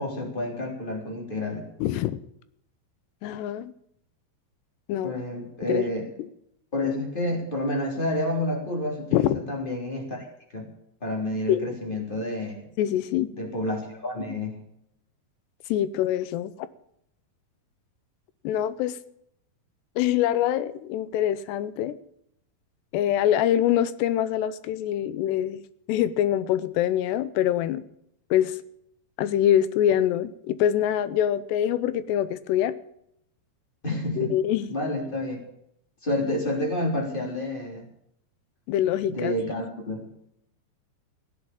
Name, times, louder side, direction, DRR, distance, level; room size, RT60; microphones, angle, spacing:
voice 1, 0.0-1.7 5.0-6.0 6.7-10.3 10.5-10.7 11.0-12.6 13.3-14.6 33.8-34.3 34.7-35.4 36.0-37.9 39.1-40.0, left 1 dB, 15° left, 2.9 m, -29 dB
voice 2, 1.8-2.2 3.2-3.7 4.9-5.1 5.6-5.9 6.2-6.3 9.1-9.4 11.5-11.7 12.8-13.3 15.7-16.5 18.4-19.0 20.0-22.0 22.9-25.6 25.9-27.8 28.3-28.6 29.2-32.7 34.2-34.7 38.7-39.3, left 11 dB, 80° left, 2.7 m, -24 dB
16.5 x 9.0 x 8.7 m
omnidirectional pair, 5.1 m